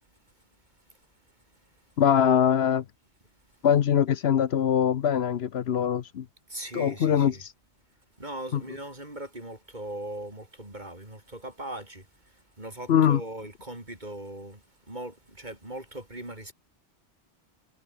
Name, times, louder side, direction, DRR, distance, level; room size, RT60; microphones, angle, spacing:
voice 1, 2.0-2.8 3.6-6.2 6.7-7.5 8.5-8.6 12.9-13.2, left 9 dB, 70° left, 1.0 m, -22 dB
voice 2, 6.5-7.4 8.2-12.1 12.3-16.5, right 1 dB, 40° right, 5.7 m, -39 dB
omnidirectional pair, 1.1 m